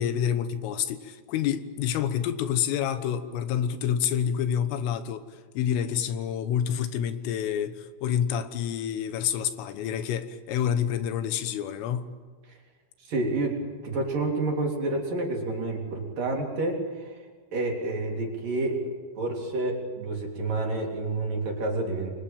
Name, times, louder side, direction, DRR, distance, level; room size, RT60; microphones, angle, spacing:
voice 1, 0.0-12.1, left 9 dB, 80° left, 3.8 m, -28 dB
voice 2, 13.0-17.2 17.5-18.8 19.2-22.1, right 2 dB, 45° right, 4.7 m, -29 dB
28.0 x 23.0 x 8.9 m
omnidirectional pair, 5.9 m